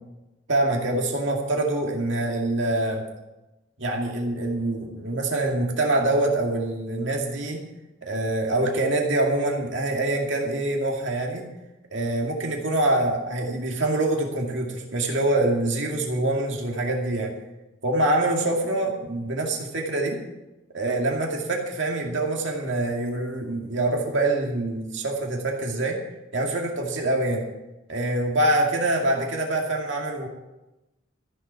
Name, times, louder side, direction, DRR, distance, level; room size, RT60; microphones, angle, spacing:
voice 1, 0.5-3.0 3.8-7.6 8.0-11.4 11.9-17.3 17.8-20.2 20.7-26.0 26.3-27.4 27.9-30.3, right 2 dB, 60° right, 0 dB, 2.3 m, -25 dB
14.5 x 7.5 x 7.0 m, 0.99 s
head